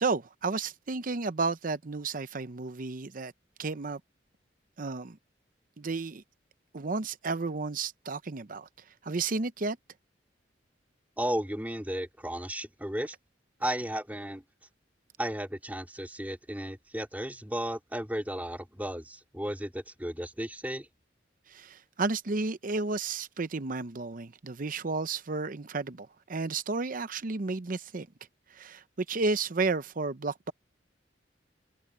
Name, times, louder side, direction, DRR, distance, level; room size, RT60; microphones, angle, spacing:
voice 1, 0.0-3.3 3.6-4.0 4.8-5.2 5.8-6.2 6.7-8.7 9.0-9.8 21.5-28.1 28.5-30.5, right 3 dB, 50° right, 0.7 m, -32 dB
voice 2, 11.2-13.1 13.6-14.4 15.2-20.8, right 1 dB, 10° right, 3.4 m, -34 dB
head